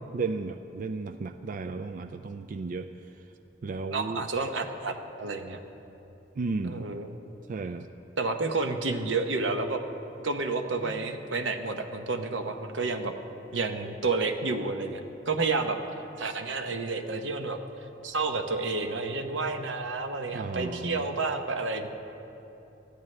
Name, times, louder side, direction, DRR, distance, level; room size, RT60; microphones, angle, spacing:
voice 1, 0.1-2.9 3.6-4.2 6.4-6.9 7.5-7.9 10.8-11.0 20.3-21.1, right 4 dB, 45° right, 9 dB, 0.4 m, -34 dB
voice 2, 3.9-5.6 6.6-7.1 8.2-9.8 10.2-13.1 13.5-15.8 16.2-17.6 18.0-21.9, right 3 dB, 85° right, 6 dB, 0.9 m, -30 dB
20.0 x 13.5 x 3.3 m, 3.0 s
head